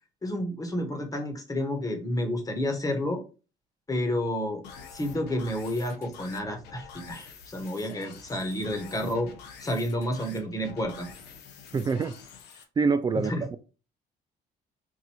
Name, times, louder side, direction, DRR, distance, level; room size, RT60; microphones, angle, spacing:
voice 1, 0.2-3.2 3.9-4.6 4.9-9.3 9.6-11.1 13.2-13.4, left 1 dB, 20° left, 1.2 m, -30 dB
sound 1, 4.6-12.6, left 6 dB, 80° left, 0.9 m, -47 dB
voice 2, 11.7-12.2 12.8-13.6, right 4 dB, 25° right, 0.4 m, -26 dB
4.7 x 2.5 x 4.3 m
cardioid pair, 110°, 17 cm